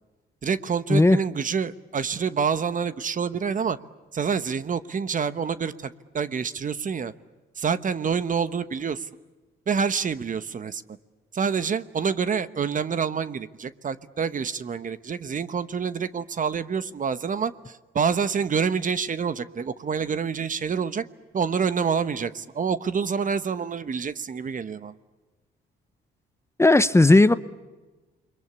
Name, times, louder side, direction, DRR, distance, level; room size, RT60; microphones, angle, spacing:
voice 1, 0.4-3.8 4.1-7.1 7.6-9.1 9.7-10.8 11.3-21.0 21.3-24.9, right 6 dB, 40° right, 14 dB, 1.1 m, -27 dB
voice 2, 26.6-27.3, left 2 dB, 15° left, 13 dB, 0.8 m, -15 dB
29.0 x 22.5 x 8.4 m, 1.2 s
cardioid pair, 90°, 20 cm